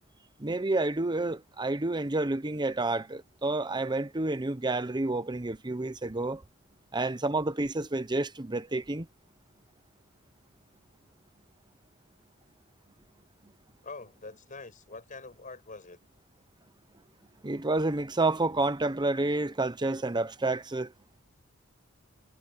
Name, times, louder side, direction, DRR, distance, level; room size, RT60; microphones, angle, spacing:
voice 1, 0.4-6.4 6.9-9.1 17.4-20.9, right 2 dB, 20° right, 0.8 m, -29 dB
voice 2, 13.8-16.0, left 3 dB, 40° left, 6.2 m, -45 dB
head